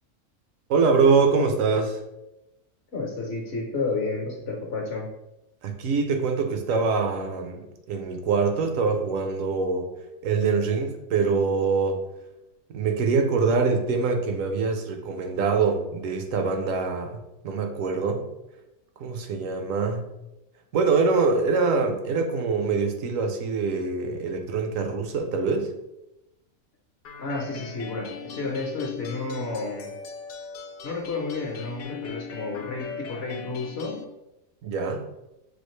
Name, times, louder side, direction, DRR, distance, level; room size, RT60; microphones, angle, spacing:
voice 1, 0.7-2.0 5.6-9.9 10.2-12.0 12.7-18.3 19.0-20.1 20.7-25.7 34.6-35.0, right 4 dB, 70° right, 5 dB, 1.0 m, -24 dB
voice 2, 2.9-5.1 27.2-29.9 30.8-34.0, left 3 dB, 55° left, 0 dB, 0.9 m, -31 dB
sound 1, 27.0-34.0, left 6 dB, 80° left, 0.5 m, -39 dB
6.3 x 2.5 x 3.1 m, 0.93 s
omnidirectional pair, 1.6 m